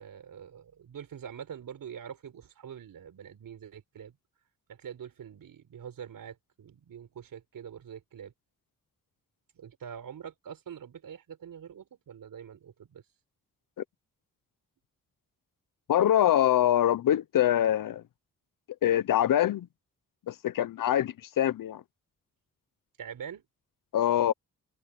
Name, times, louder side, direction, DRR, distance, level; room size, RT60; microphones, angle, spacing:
voice 1, 0.0-4.2 4.7-8.3 9.5-13.0 23.0-23.4, right 8 dB, 90° right, 4.7 m, -44 dB
voice 2, 15.9-18.0 18.8-19.7 20.3-21.8 23.9-24.3, left 11 dB, 75° left, 0.7 m, -24 dB
wide cardioid pair, 130°, 33 cm